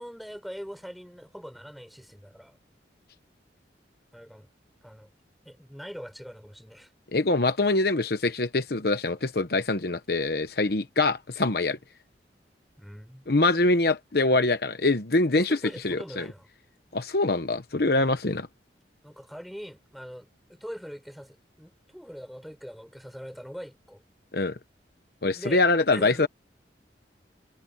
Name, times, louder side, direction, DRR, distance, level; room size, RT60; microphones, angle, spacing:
voice 1, 0.0-2.6 4.1-4.5 4.8-5.1 5.4-6.9 12.8-13.2 15.3-16.5 18.0-18.2 19.0-24.0 25.4-25.6 25.9-26.3, equal, ahead, 4.5 m, -42 dB
voice 2, 7.1-11.8 13.3-15.6 15.8-16.2 16.9-18.5 24.3-24.5 25.2-26.3, left 2 dB, 55° left, 1.0 m, -24 dB
head